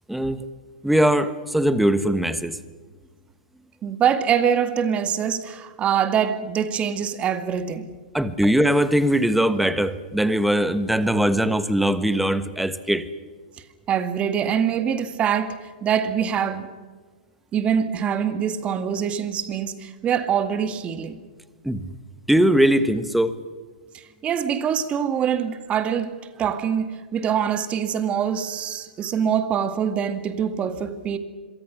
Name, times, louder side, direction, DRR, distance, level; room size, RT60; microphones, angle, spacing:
voice 1, 0.1-0.4 0.8-2.6 8.1-13.1 21.6-21.9 22.3-23.4, right 1 dB, ahead, 1.4 m, -21 dB
voice 2, 3.8-7.9 13.9-16.7 17.5-21.2 24.2-26.1 26.4-31.2, right 8 dB, 25° right, 2.1 m, -24 dB
26.0 x 24.0 x 6.2 m
hypercardioid pair, 130°, 5 cm